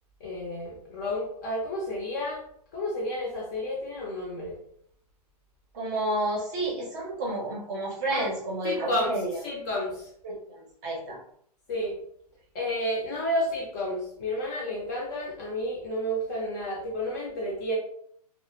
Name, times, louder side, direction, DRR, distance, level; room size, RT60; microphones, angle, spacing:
voice 1, 0.2-2.4 2.7-4.5 8.1-8.3 8.6-10.1 11.7-11.9 12.5-17.8, left 1 dB, 30° left, -2 dB, 0.6 m, -31 dB
voice 2, 5.7-9.4 10.2-11.2, right 1 dB, 25° right, -3 dB, 0.7 m, -31 dB
2.1 x 2.0 x 2.9 m, 0.66 s
hypercardioid pair, 155°, 20 cm